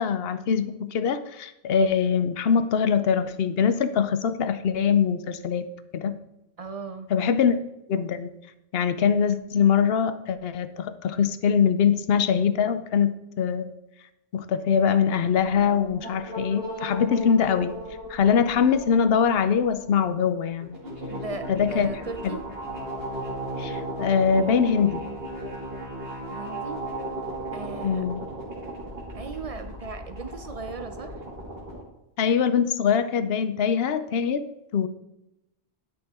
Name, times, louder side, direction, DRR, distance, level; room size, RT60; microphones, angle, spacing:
voice 1, 0.0-5.7 5.9-6.2 7.1-7.6 7.9-8.3 8.7-13.7 14.3-17.8 18.1-20.7 21.5-21.9 22.2-22.4 23.6-25.0 27.8-28.2 32.2-34.5 34.7-34.9, left 7 dB, 70° left, 12 dB, 0.9 m, -23 dB
voice 2, 6.6-7.4 21.1-22.4 26.3-26.8 27.5-28.0 29.1-31.2, right 4 dB, 40° right, 7 dB, 0.7 m, -37 dB
sound 1, 15.3-31.8, right 1 dB, 60° right, 2.7 m, -36 dB
11.5 x 6.2 x 3.6 m, 0.92 s
omnidirectional pair, 1.1 m